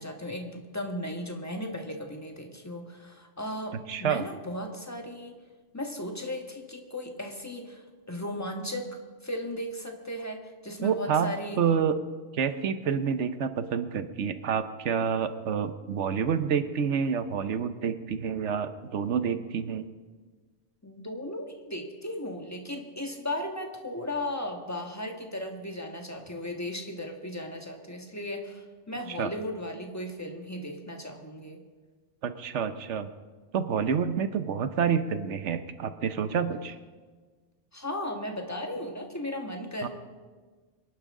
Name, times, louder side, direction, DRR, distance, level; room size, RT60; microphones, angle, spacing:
voice 1, 0.0-5.4 5.7-7.8 8.1-8.9 9.2-11.6 20.8-31.6 37.7-39.9, left 1 dB, 15° left, 2 dB, 1.6 m, -36 dB
voice 2, 3.9-4.2 10.8-11.9 12.3-19.8 29.1-29.3 32.2-33.1 33.5-36.8 39.8-39.9, right 7 dB, 75° right, 11 dB, 1.1 m, -28 dB
25.0 x 11.0 x 3.7 m, 1.4 s
omnidirectional pair, 1.2 m